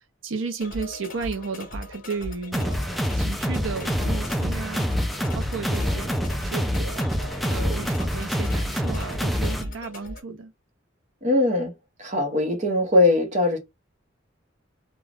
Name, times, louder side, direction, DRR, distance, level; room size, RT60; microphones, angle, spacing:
voice 1, 0.2-2.7 3.2-4.9 5.3-7.1 7.4-10.5, right 4 dB, 90° right, 0.6 m, -33 dB
sound 1, 0.6-10.2, left 1 dB, 45° left, 0.9 m, -38 dB
sound 2, 2.5-9.6, equal, ahead, 0.3 m, -26 dB
voice 2, 11.2-11.7 12.0-13.6, left 2 dB, 40° right, 0.8 m, -21 dB
2.4 x 2.3 x 3.3 m
head